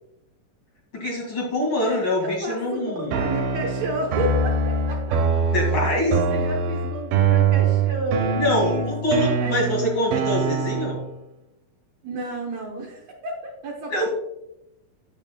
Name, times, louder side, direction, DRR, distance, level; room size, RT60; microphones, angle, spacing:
voice 1, 0.9-3.2 5.5-6.2 8.4-11.0 13.9-14.1, left 1 dB, 40° left, -1 dB, 2.4 m, -24 dB
voice 2, 1.9-5.2 6.3-8.9 9.4-9.6 12.0-14.1, right 2 dB, 65° right, 0 dB, 1.7 m, -31 dB
sound 1, 3.1-11.1, right 5 dB, 90° right, 2.8 m, -23 dB
9.2 x 9.2 x 2.2 m, 0.85 s
omnidirectional pair, 4.1 m